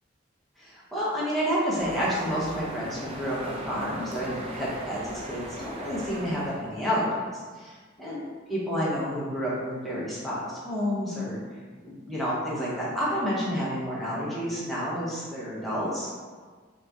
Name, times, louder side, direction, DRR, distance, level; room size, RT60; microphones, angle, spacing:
voice 1, 0.6-7.1 7.6-8.2 8.5-11.4 11.8-16.1, equal, ahead, -8 dB, 0.8 m, -30 dB
sound 1, 1.8-6.8, right 1 dB, 30° right, 0.5 m, -38 dB
3.9 x 2.1 x 3.5 m, 1.5 s
head